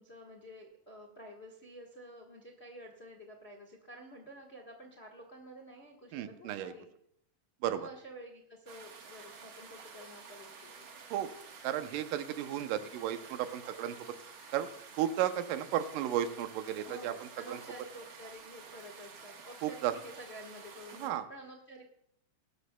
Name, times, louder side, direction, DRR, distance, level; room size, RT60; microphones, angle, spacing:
voice 1, 0.0-6.9 7.6-10.9 16.8-21.8, equal, 80° left, 1 dB, 0.5 m, -50 dB
voice 2, 6.1-6.7 7.6-7.8 11.1-11.3 11.6-14.0 14.5-14.7 15.0-17.1 17.5-17.6 19.6-19.9 21.0-21.3, right 11 dB, 85° right, 10 dB, 2.4 m, -33 dB
sound 1, 8.7-21.1, right 5 dB, 50° right, 1.7 m, -51 dB
20.5 x 12.0 x 2.2 m, 0.75 s
omnidirectional pair, 3.8 m